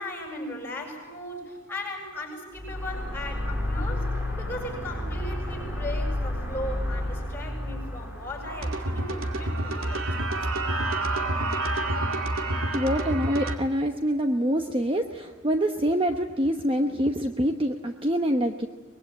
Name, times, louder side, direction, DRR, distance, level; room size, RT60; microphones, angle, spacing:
voice 1, 0.0-10.1, left 1 dB, 10° left, -3 dB, 7.4 m, -37 dB
sound 1, 2.6-10.9, left 1 dB, 10° right, 4.5 m, -32 dB
sound 2, 8.5-13.6, right 2 dB, 80° right, 2.3 m, -28 dB
voice 2, 12.7-18.7, equal, 25° right, 5 dB, 1.0 m, -25 dB
24.5 x 21.5 x 9.1 m, 1.3 s
head